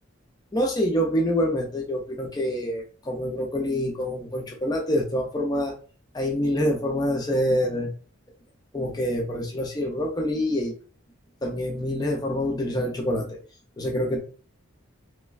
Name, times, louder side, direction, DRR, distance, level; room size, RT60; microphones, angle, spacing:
voice 1, 0.5-5.7 6.1-7.9 8.7-10.7 11.4-13.4 13.8-14.2, equal, 20° left, 0 dB, 0.4 m, -26 dB
3.1 x 2.2 x 2.3 m, 0.39 s
head